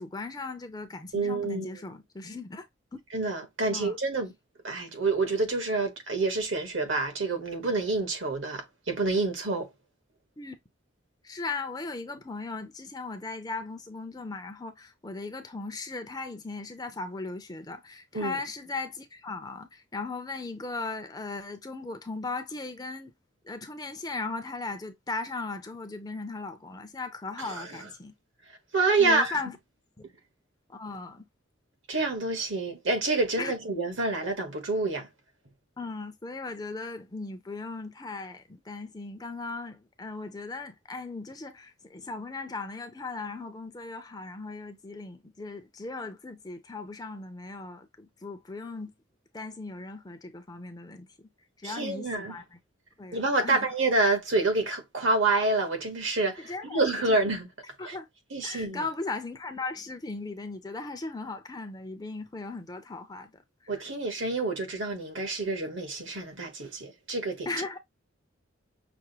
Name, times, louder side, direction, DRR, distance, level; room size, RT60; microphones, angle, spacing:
voice 1, 0.0-2.7 3.7-4.0 10.4-10.6 11.2-23.1 23.4-28.1 29.0-29.6 30.0-30.1 30.7-31.2 33.4-33.5 35.8-48.9 49.3-51.3 51.6-52.6 53.0-53.7 56.4-57.2 57.8-58.1 58.4-63.3 63.6-63.7 67.5-67.8, left 3 dB, 20° left, 0.5 m, -37 dB
voice 2, 1.1-1.7 3.1-4.3 4.6-9.7 18.1-18.4 27.4-27.7 28.7-29.4 31.9-35.1 51.6-52.4 53.1-57.5 57.8-58.0 58.3-58.8 63.7-67.5, right 3 dB, 70° right, 1.3 m, -28 dB
6.0 x 2.1 x 2.8 m
head